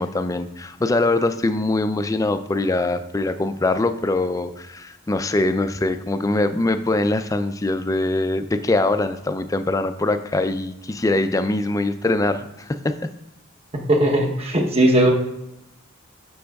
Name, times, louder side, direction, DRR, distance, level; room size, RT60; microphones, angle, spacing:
voice 1, 0.0-13.1, left 2 dB, 15° left, 10 dB, 0.3 m, -23 dB
voice 2, 13.9-15.1, right 1 dB, 30° right, 1 dB, 0.9 m, -17 dB
11.5 x 6.0 x 2.3 m, 0.87 s
head